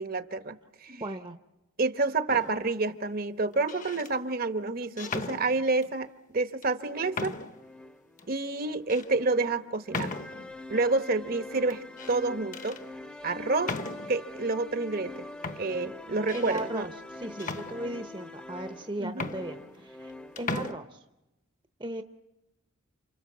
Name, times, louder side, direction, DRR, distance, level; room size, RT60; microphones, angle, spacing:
voice 1, 0.0-0.9 1.8-6.1 6.3-7.4 8.3-10.1 10.7-12.8 13.2-13.7 14.1-15.2 15.6-16.9 19.0-19.3, right 3 dB, 45° right, 10 dB, 1.1 m, -29 dB
voice 2, 0.9-1.4 16.3-21.0 21.8-22.0, right 1 dB, 25° right, 7 dB, 0.9 m, -37 dB
sound 1, 2.3-2.7 3.5-4.1 5.0-5.9 6.6-6.7 7.1-7.7 8.2-8.3 8.9-9.1 9.9-10.6 11.7-12.2 12.5-12.8 13.6-14.3 15.0-15.1 15.4-16.7 17.4-18.2 18.8-18.9 19.1-20.1 20.4-20.7, left 3 dB, 35° left, 1.1 m, -37 dB
sound 2, 6.8-20.8, left 2 dB, 5° left, 0.9 m, -44 dB
29.5 x 27.0 x 7.4 m, 0.98 s
head